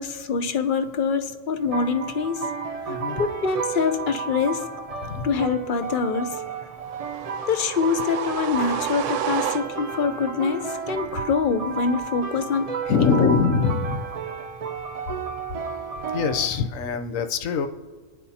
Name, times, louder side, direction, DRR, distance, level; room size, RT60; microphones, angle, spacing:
voice 1, 0.0-2.5 2.9-4.7 5.2-6.4 7.5-12.7 13.0-13.3, left 5 dB, 45° left, 9 dB, 0.8 m, -25 dB
sound 1, 1.6-16.5, right 5 dB, 55° right, 0.4 m, -33 dB
voice 2, 2.9-3.2 5.0-5.3 12.9-14.1 16.1-17.7, left 5 dB, 90° left, 7 dB, 1.2 m, -23 dB
sound 2, 6.9-10.1, right 10 dB, 80° right, 0.9 m, -30 dB
26.0 x 10.0 x 2.8 m, 1.4 s
omnidirectional pair, 1.3 m